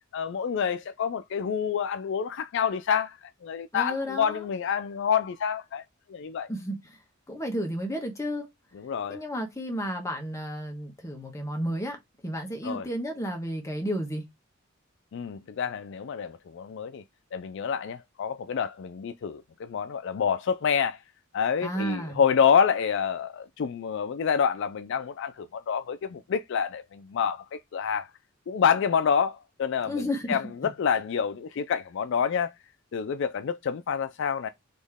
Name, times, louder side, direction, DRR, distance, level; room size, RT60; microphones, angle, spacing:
voice 1, 0.1-5.8 6.1-6.5 8.7-9.2 12.6-12.9 15.1-17.0 17.3-21.0 21.3-28.1 28.5-32.5 32.9-34.5, left 7 dB, 60° left, 0.4 m, -27 dB
voice 2, 3.7-4.4 6.5-7.0 7.3-8.5 9.1-12.0 12.2-14.2 21.6-22.2 29.8-30.4, equal, 15° left, 1.2 m, -32 dB
4.2 x 3.0 x 3.4 m
head